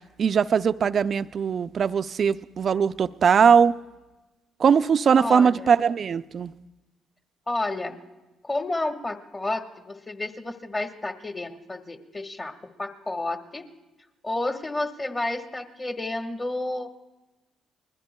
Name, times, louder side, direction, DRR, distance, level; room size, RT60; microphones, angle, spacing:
voice 1, 0.2-3.7 4.6-6.5, right 6 dB, 55° right, 14 dB, 0.4 m, -20 dB
voice 2, 5.2-5.7 7.5-8.0 8.4-13.7 14.2-17.0, left 2 dB, 30° left, 6 dB, 1.5 m, -31 dB
26.5 x 20.5 x 2.3 m, 1.1 s
hypercardioid pair, 50°, 0 cm